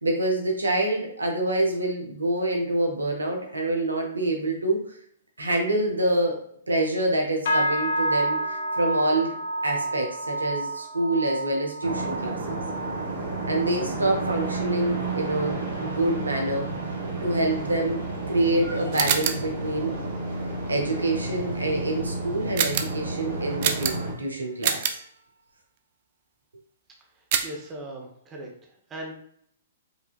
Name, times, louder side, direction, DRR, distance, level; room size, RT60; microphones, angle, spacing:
voice 1, 0.0-5.0 5.4-6.4 6.7-9.4 9.6-12.6 13.5-16.7 17.2-18.0 18.3-20.0 20.7-25.0, right 1 dB, 80° right, 1 dB, 0.8 m, -26 dB
sound 1, 7.5-17.0 17.3-17.7 18.1-18.5 19.0-19.1, right 1 dB, 60° left, 0.5 m, -31 dB
sound 2, 11.8-24.1, right 3 dB, 60° right, 1.4 m, -31 dB
sound 3, 18.9-19.5 22.6-23.0 23.6-24.2 24.6-25.0 27.3-27.6, right 8 dB, 45° right, 0.4 m, -26 dB
voice 2, 27.4-28.5 28.9-29.1, right 1 dB, 20° right, -1 dB, 1.0 m, -38 dB
5.0 x 2.7 x 2.4 m, 0.66 s
figure-of-eight pair, 115°, 0 cm